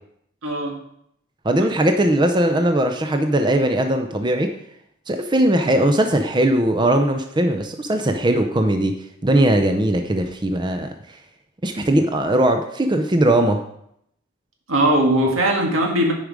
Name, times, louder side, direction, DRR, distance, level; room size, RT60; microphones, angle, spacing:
voice 1, 0.4-0.7 14.7-16.1, right 1 dB, 85° right, 1 dB, 1.8 m, -19 dB
voice 2, 1.4-4.5 5.1-8.9 9.2-10.9 11.6-13.6, right 1 dB, 20° right, 5 dB, 0.5 m, -19 dB
10.0 x 5.1 x 4.8 m, 0.74 s
head